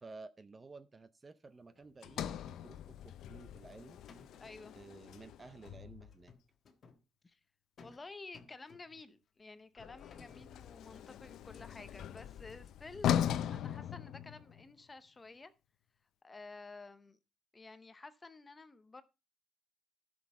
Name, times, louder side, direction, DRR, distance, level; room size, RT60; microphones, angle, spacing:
voice 1, 0.0-4.0 4.7-6.3, right 3 dB, 20° right, 0.5 m, -53 dB
Sliding door, 2.0-6.3 9.8-14.7, left 10 dB, 85° left, 0.4 m, -39 dB
sound 1, 3.6-3.8 4.1-4.6 6.1-7.0 7.8-8.1 8.3-9.1 9.8-10.6, left 4 dB, 40° left, 1.3 m, -59 dB
voice 2, 4.4-4.7 7.2-7.4 7.8-15.5 16.2-17.2 17.5-19.0, left 3 dB, 20° left, 0.7 m, -52 dB
14.0 x 6.2 x 4.2 m
cardioid pair, 180°, 0 cm